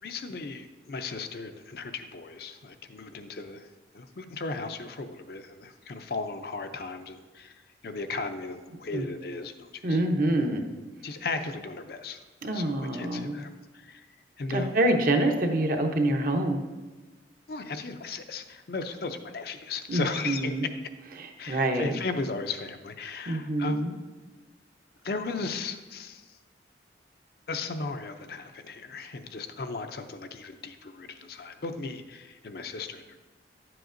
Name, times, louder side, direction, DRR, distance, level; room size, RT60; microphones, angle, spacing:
voice 1, 0.0-3.7 3.9-7.5 7.8-10.0 11.0-14.1 14.4-14.7 17.5-20.8 21.4-23.8 25.0-26.2 27.5-33.2, left 3 dB, 55° left, 8 dB, 0.5 m, -36 dB
voice 2, 9.8-10.6 12.4-13.4 14.5-16.6 19.9-20.6 21.2-22.0 23.3-23.9, right 1 dB, 50° right, 4 dB, 0.7 m, -26 dB
10.0 x 7.7 x 2.6 m, 1.2 s
head